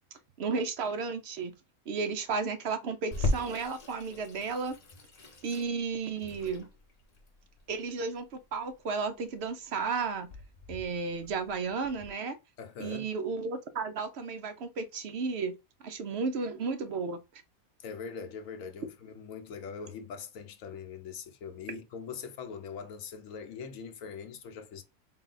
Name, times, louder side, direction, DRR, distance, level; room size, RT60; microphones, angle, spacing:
voice 1, 0.4-1.5 1.9-4.8 5.4-6.7 7.7-10.3 10.7-12.4 12.8-15.6 15.8-17.2, right 4 dB, 60° right, 0.7 m, -33 dB
Water tap faucet / Sink (filling or washing), 3.1-12.1, left 2 dB, 35° left, 0.7 m, -38 dB
voice 2, 12.6-13.1 17.8-24.8, left 6 dB, 70° left, 1.1 m, -42 dB
4.0 x 2.2 x 3.9 m
omnidirectional pair, 1.5 m